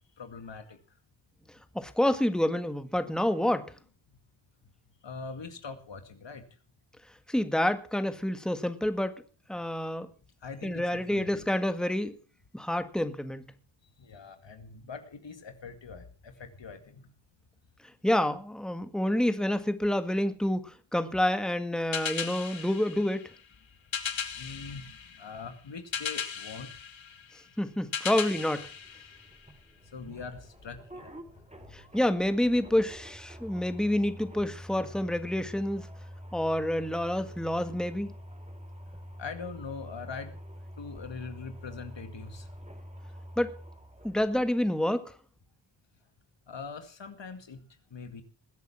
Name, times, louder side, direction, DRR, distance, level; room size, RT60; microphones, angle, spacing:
voice 1, 0.2-0.8 5.0-6.4 10.4-11.5 14.0-17.1 24.3-26.7 29.8-31.9 39.2-40.3 40.8-42.5 46.5-47.6 47.9-48.2, left 5 dB, 70° left, 2.2 m, -42 dB
voice 2, 1.8-3.7 7.3-9.2 9.5-10.1 10.6-12.1 12.5-13.4 18.0-23.2 27.6-28.7 31.7-35.9 36.3-38.1 43.4-43.6 44.0-45.1, left 1 dB, ahead, 1.7 m, -28 dB
sound 1, 21.9-29.8, left 7 dB, 85° left, 1.6 m, -38 dB
sound 2, 28.5-44.7, equal, 15° right, 3.2 m, -47 dB
20.5 x 8.2 x 6.0 m
cardioid pair, 55°, 45 cm